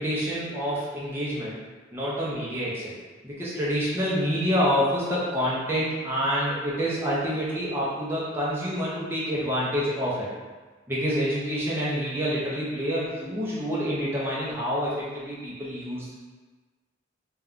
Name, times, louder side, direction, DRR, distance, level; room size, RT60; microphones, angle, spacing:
voice 1, 0.0-1.6 1.9-3.0 3.2-10.3 10.9-16.1, equal, 10° right, -8 dB, 0.5 m, -27 dB
2.3 x 2.2 x 3.6 m, 1.3 s
head